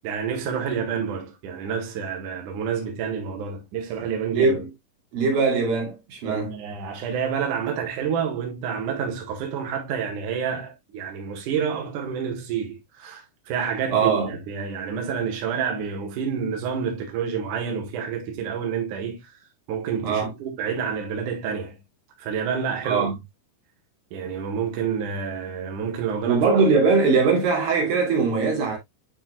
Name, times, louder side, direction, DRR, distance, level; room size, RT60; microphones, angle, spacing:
voice 1, 0.0-4.5 6.2-19.4 19.7-21.8 22.2-23.1 24.1-26.4, right 7 dB, 65° right, 2.8 m, -29 dB
voice 2, 4.3-4.7 5.1-6.6 13.9-14.3 20.0-20.3 22.8-23.1 26.3-28.8, right 4 dB, 85° right, 4.3 m, -21 dB
9.0 x 5.4 x 2.3 m
omnidirectional pair, 4.0 m